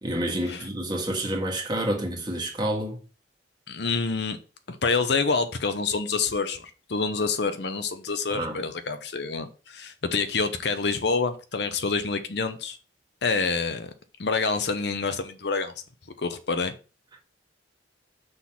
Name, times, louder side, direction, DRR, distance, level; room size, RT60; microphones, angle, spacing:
voice 1, 0.0-3.0 8.3-8.6, right 1 dB, 25° right, 1.7 m, -29 dB
voice 2, 3.7-4.4 4.7-12.8 13.2-13.9 14.2-15.7 16.2-16.7, left 4 dB, 65° left, 0.8 m, -27 dB
6.2 x 3.8 x 5.9 m
head